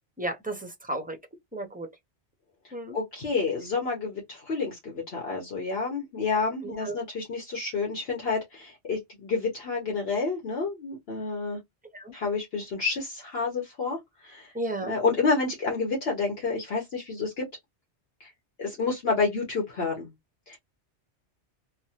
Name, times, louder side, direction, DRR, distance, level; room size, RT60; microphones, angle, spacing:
voice 1, 0.2-1.2 1.5-1.9 2.7-3.0 6.6-7.0 11.9-12.1 14.5-15.0, right 1 dB, 10° right, 0.4 m, -33 dB
voice 2, 2.9-11.6 12.1-14.0 14.2-14.5 14.8-17.5 18.2-18.3 18.6-20.1 20.5-20.6, left 4 dB, 60° left, 1.1 m, -29 dB
3.2 x 2.1 x 2.7 m
omnidirectional pair, 1.2 m